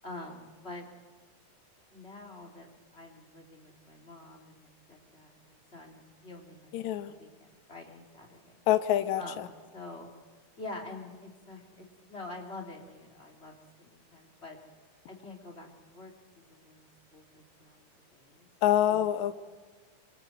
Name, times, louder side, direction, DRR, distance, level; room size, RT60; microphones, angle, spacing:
voice 1, 0.0-0.9 1.9-8.6 9.2-10.1 10.6-14.6 15.1-16.9 17.1-19.1, left 2 dB, 20° left, 1 dB, 3.3 m, -47 dB
voice 2, 6.7-7.1 8.7-9.5 18.6-19.3, left 11 dB, 70° left, 8 dB, 2.2 m, -26 dB
26.0 x 25.0 x 7.8 m, 1.3 s
omnidirectional pair, 3.6 m